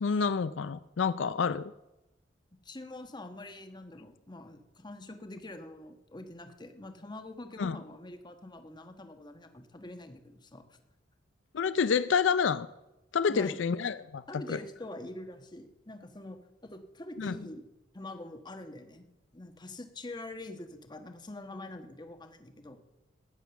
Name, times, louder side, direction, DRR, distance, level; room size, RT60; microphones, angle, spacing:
voice 1, 0.0-1.7 7.6-7.8 11.5-12.7 13.1-14.6 17.2-17.4, left 6 dB, 75° left, 14 dB, 0.4 m, -28 dB
voice 2, 2.6-10.8 13.3-13.6 14.3-17.7 17.9-19.1 19.3-22.8, left 2 dB, 25° left, 7 dB, 1.3 m, -45 dB
15.0 x 9.5 x 7.0 m, 0.98 s
head